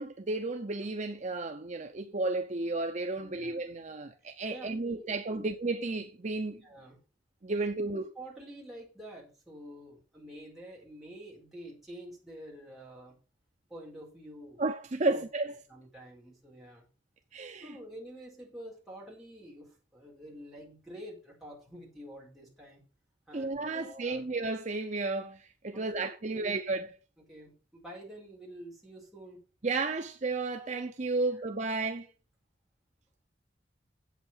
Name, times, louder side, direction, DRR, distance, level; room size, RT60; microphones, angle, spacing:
voice 1, 0.0-6.6 7.4-8.0 14.6-15.5 17.3-17.7 23.3-26.9 29.6-32.1, right 3 dB, 40° right, 0.7 m, -33 dB
voice 2, 3.2-3.5 4.5-5.5 6.6-7.0 7.6-13.2 13.7-14.6 15.0-15.2 15.7-16.8 17.6-22.8 23.3-24.3 25.7-26.6 27.3-29.4 31.2-31.3, right 1 dB, ahead, 4.6 m, -48 dB
8.3 x 8.1 x 5.7 m
head